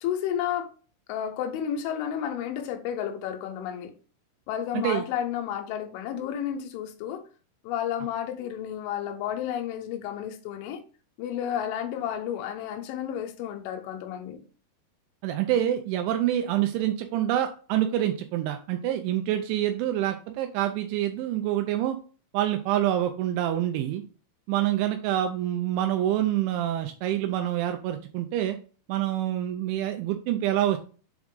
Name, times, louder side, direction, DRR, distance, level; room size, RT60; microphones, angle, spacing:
voice 1, 0.0-0.7 1.1-3.9 4.5-7.2 7.6-10.8 11.2-14.4, left 9 dB, 80° left, 3.0 m, -31 dB
voice 2, 15.2-22.0 22.3-24.0 24.5-28.6 28.9-30.8, right 12 dB, 90° right, 2.6 m, -26 dB
7.4 x 3.5 x 3.7 m
omnidirectional pair, 5.9 m